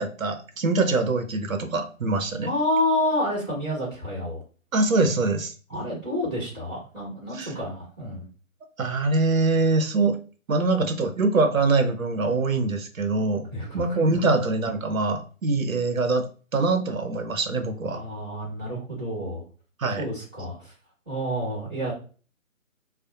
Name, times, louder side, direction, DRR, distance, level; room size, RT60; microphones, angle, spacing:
voice 1, 0.0-2.5 4.7-5.9 7.3-7.5 8.8-10.2 10.5-13.4 13.7-16.3 16.5-18.0 19.8-20.1, right 3 dB, 75° right, 6 dB, 0.7 m, -24 dB
voice 2, 2.4-4.4 5.7-8.3 13.5-13.8 17.9-19.4 20.0-20.7 21.0-21.9, left 1 dB, 5° left, -12 dB, 0.9 m, -29 dB
2.4 x 2.0 x 2.7 m, 0.37 s
figure-of-eight pair, 150°, 41 cm